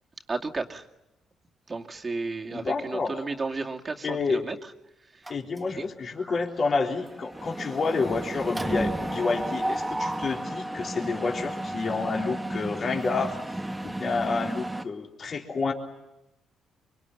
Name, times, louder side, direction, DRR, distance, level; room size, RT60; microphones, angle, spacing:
voice 1, 0.3-0.8 1.7-4.6 5.8-5.9, right 3 dB, 30° right, 2 dB, 2.4 m, -33 dB
voice 2, 2.5-3.2 4.0-4.4 5.3-13.6 13.8-15.7, left 4 dB, 45° left, 0 dB, 3.8 m, -29 dB
Mechanisms, 5.3-5.9 6.2-6.4 6.7-14.8, right 1 dB, 10° right, 1.4 m, -33 dB
25.0 x 24.5 x 9.2 m, 0.91 s
cardioid pair, 90°, 0 cm